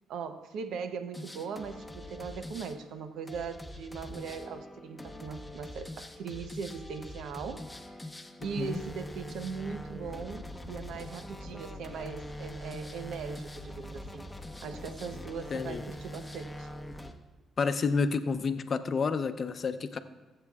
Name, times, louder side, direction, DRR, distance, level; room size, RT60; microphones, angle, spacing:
voice 1, 0.1-14.3 14.6-16.7, right 6 dB, 80° right, 9 dB, 0.7 m, -40 dB
sound 1, 1.1-17.1, left 1 dB, 10° left, 1.0 m, -43 dB
voice 2, 15.5-15.8 17.6-20.0, left 5 dB, 45° left, 9 dB, 0.7 m, -29 dB
23.0 x 7.6 x 2.4 m, 1.2 s
cardioid pair, 90°, 0 cm